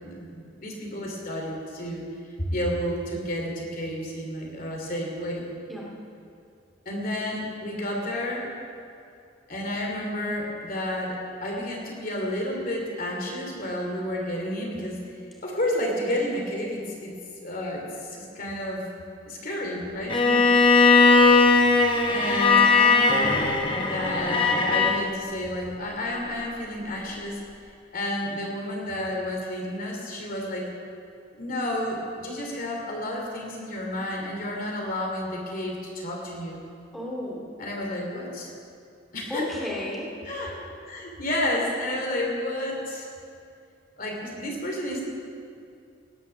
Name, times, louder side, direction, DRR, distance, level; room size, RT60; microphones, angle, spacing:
voice 1, 0.0-2.1 2.5-5.5 6.8-8.5 9.5-15.0 15.4-17.1 17.4-18.9 19.3-20.2 22.1-23.4 23.8-27.4 27.9-30.7 31.4-36.6 37.6-38.5 39.1-39.5 40.2-40.5 40.8-43.1 44.0-45.0, left 1 dB, 45° left, 0 dB, 2.9 m, -31 dB
Bowed string instrument, 20.1-25.0, left 4 dB, 25° left, 1.2 m, -19 dB
voice 2, 36.9-37.5 39.3-40.1, left 1 dB, ahead, -4 dB, 2.7 m, -33 dB
18.0 x 9.9 x 6.9 m, 2.6 s
head